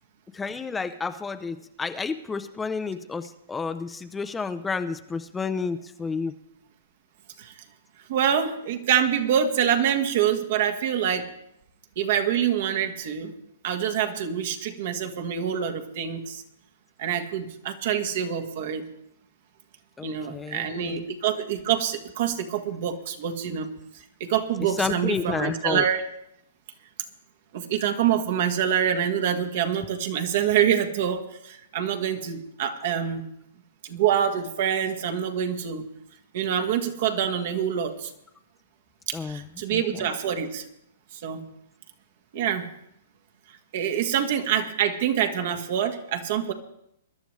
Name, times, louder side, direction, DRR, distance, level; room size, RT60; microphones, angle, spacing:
voice 1, 0.3-6.4 20.0-21.1 24.6-25.8 39.1-40.1, left 4 dB, 10° left, 9 dB, 0.6 m, -31 dB
voice 2, 8.1-11.3 12.0-13.3 13.6-16.4 17.0-18.8 20.0-23.7 24.2-26.0 27.5-33.2 33.8-35.8 36.3-38.1 39.1-40.6 41.1-41.4 42.3-42.7 43.7-46.5, right 9 dB, 60° right, 6 dB, 1.5 m, -26 dB
21.0 x 11.5 x 3.3 m, 0.77 s
hypercardioid pair, 125°, 0 cm